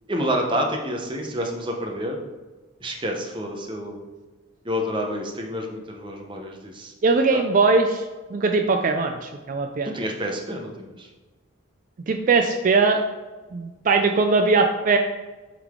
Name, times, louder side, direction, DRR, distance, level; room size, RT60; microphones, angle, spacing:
voice 1, 0.1-2.2 2.8-4.0 4.6-6.9 9.8-11.1, equal, 25° right, 2 dB, 0.7 m, -28 dB
voice 2, 7.0-8.0 8.3-9.9 12.1-13.0 13.5-15.0, right 4 dB, 40° right, 5 dB, 0.3 m, -20 dB
7.8 x 3.8 x 3.6 m, 1.3 s
head